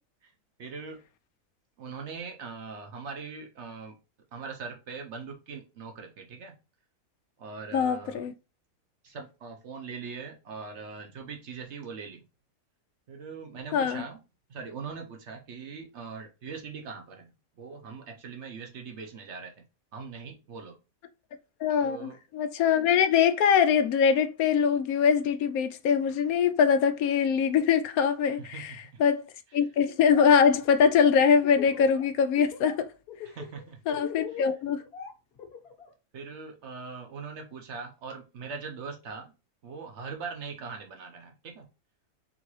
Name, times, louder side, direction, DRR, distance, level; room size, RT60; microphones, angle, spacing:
voice 1, 0.6-1.0 1.8-4.0 4.3-6.5 7.4-8.3 9.0-12.2 13.1-14.2 14.5-19.6 19.9-20.8 21.8-22.2 28.4-28.8 33.2-33.8 34.3-34.5 36.1-39.3 39.6-41.7, right 5 dB, 60° right, 0.9 m, -41 dB
voice 2, 7.7-8.3 13.7-14.0 21.6-29.2 29.5-32.9 33.9-34.8, left 7 dB, 85° left, 1.1 m, -23 dB
Laughter, 29.9-30.3 30.6-32.0 32.4-32.7 33.1-35.9, left 7 dB, 45° left, 1.3 m, -42 dB
3.8 x 3.7 x 3.1 m
omnidirectional pair, 1.5 m